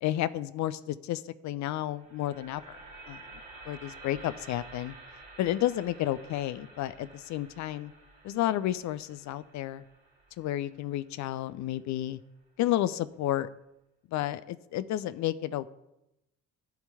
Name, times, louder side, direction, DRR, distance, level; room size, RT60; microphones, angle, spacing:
voice 1, 0.0-2.8 3.1-3.2 3.7-4.9 5.4-7.9 8.2-9.8 10.4-12.2 12.6-13.5 14.1-15.7, left 13 dB, 40° left, 15 dB, 0.5 m, -31 dB
sound 1, 1.8-12.0, right 2 dB, 65° right, 3.1 m, -51 dB
12.0 x 4.4 x 8.2 m, 0.90 s
figure-of-eight pair, 50°, 45 cm